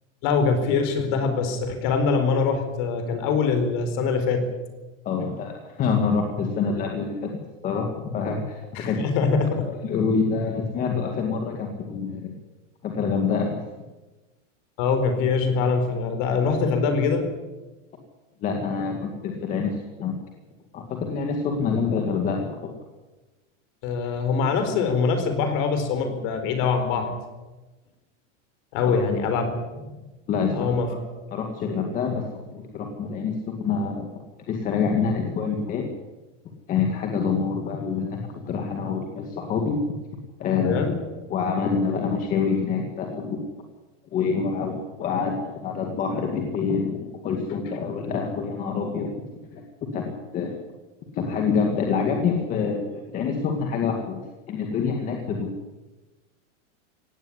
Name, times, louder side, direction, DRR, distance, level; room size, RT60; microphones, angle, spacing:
voice 1, 0.2-4.5 8.7-9.7 14.8-17.3 23.8-27.1 28.7-29.6 29.8-30.0 30.5-30.9 40.6-41.0, left 5 dB, 40° left, 8 dB, 4.3 m, -23 dB
voice 2, 5.0-7.4 7.6-9.0 9.8-12.3 12.8-13.7 18.4-20.1 20.7-22.7 28.9-29.0 30.3-30.7 31.3-32.2 32.5-34.1 34.5-35.9 36.7-39.8 40.4-40.9 41.3-43.4 44.1-49.1 49.5-49.6 49.9-50.6 51.1-55.5, left 5 dB, 20° left, 3 dB, 2.0 m, -26 dB
17.5 x 16.5 x 9.8 m, 1.1 s
supercardioid pair, 180°, 37 cm